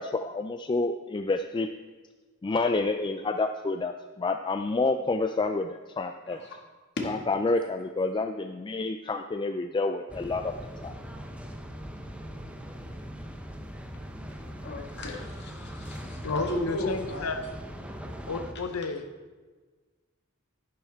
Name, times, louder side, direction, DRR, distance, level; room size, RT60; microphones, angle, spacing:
voice 1, 0.0-1.7 2.4-6.4 7.1-10.6 10.8-10.9, left 3 dB, 20° left, 7 dB, 0.3 m, -29 dB
sound 1, 10.1-18.5, equal, 5° right, 0.7 m, -40 dB
voice 2, 14.5-17.4 18.6-18.7, left 1 dB, 55° left, 0 dB, 1.9 m, -35 dB
voice 3, 16.2-17.4 18.3-19.0, left 4 dB, 80° left, 9 dB, 0.8 m, -31 dB
10.5 x 10.5 x 3.5 m, 1.3 s
head